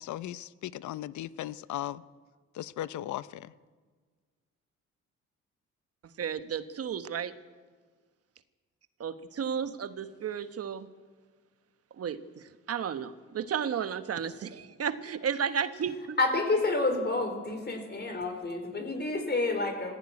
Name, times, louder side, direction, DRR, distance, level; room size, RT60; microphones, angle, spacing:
voice 1, 0.0-2.0 2.5-3.5, left 13 dB, 70° left, 17 dB, 0.7 m, -37 dB
voice 2, 6.2-7.3 9.0-10.9 11.9-16.2, right 7 dB, 50° right, 11 dB, 1.2 m, -33 dB
voice 3, 16.2-20.0, left 2 dB, 35° left, 6 dB, 4.2 m, -29 dB
17.5 x 15.5 x 9.7 m, 1.5 s
cardioid pair, 90°, 30 cm